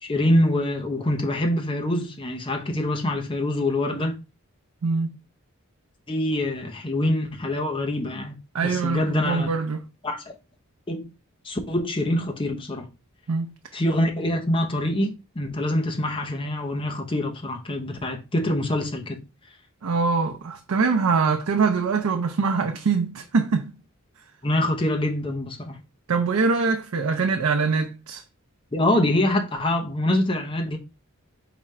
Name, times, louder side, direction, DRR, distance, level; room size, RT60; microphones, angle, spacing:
voice 1, 0.0-4.1 6.1-8.4 8.6-9.5 10.0-10.2 10.9-11.1 11.4-12.9 13.7-19.2 24.4-25.8 28.7-30.8, left 1 dB, 25° left, 0.7 m, -25 dB
voice 2, 4.8-5.2 8.5-9.8 13.3-13.5 19.8-23.7 26.1-28.2, right 4 dB, 90° right, 0.5 m, -23 dB
5.0 x 2.3 x 4.3 m
head